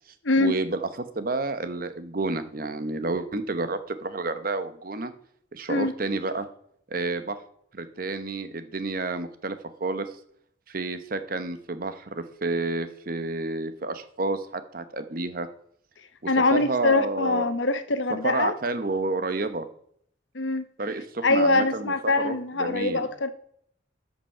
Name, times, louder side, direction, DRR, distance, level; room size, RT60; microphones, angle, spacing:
voice 1, 0.4-5.1 5.5-6.5 6.9-7.4 7.7-10.1 10.7-15.5 16.2-17.5 18.1-19.7 20.8-23.1, right 3 dB, 50° right, 10 dB, 0.9 m, -30 dB
voice 2, 16.3-18.5 20.3-20.6 21.2-23.3, left 2 dB, 85° left, 10 dB, 1.0 m, -23 dB
13.0 x 5.9 x 5.6 m, 0.67 s
head